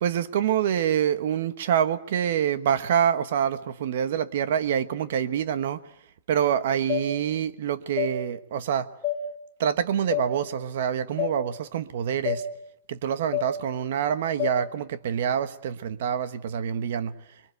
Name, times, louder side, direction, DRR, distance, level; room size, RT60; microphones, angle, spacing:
voice 1, 0.0-5.8 6.3-8.9 9.6-12.4 12.9-17.1, right 9 dB, 50° right, 1.1 m, -26 dB
sound 1, 6.9-7.0 8.0-8.1 9.0-9.2 10.1-10.3 11.2-11.3 12.2-12.4 13.3-13.5 14.4-14.5, left 13 dB, 5° left, 3.9 m, -27 dB
25.5 x 22.5 x 8.0 m
supercardioid pair, 180°, 0 cm